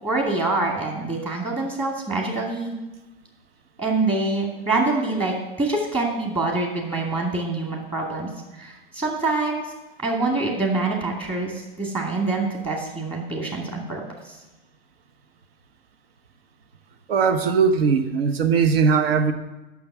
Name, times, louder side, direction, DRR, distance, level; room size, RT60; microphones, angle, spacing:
voice 1, 0.0-2.7 3.8-8.3 8.6-9.7 10.0-14.0, right 3 dB, 20° right, -1 dB, 2.1 m, -25 dB
voice 2, 17.1-19.3, right 5 dB, 75° right, 8 dB, 1.1 m, -19 dB
8.6 x 6.3 x 7.2 m, 1.0 s
hypercardioid pair, 110°, 30 cm